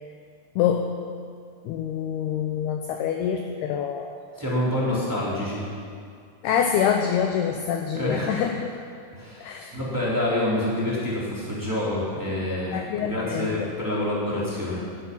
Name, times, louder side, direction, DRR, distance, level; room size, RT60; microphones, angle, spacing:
voice 1, 0.6-1.0 1.7-4.2 6.4-8.7 9.4-9.8 12.7-13.5, left 8 dB, 80° left, 4 dB, 2.3 m, -26 dB
voice 2, 4.3-5.7 7.9-8.3 9.1-14.8, left 1 dB, 5° right, -8 dB, 3.1 m, -27 dB
19.5 x 10.5 x 5.6 m, 2.2 s
omnidirectional pair, 5.4 m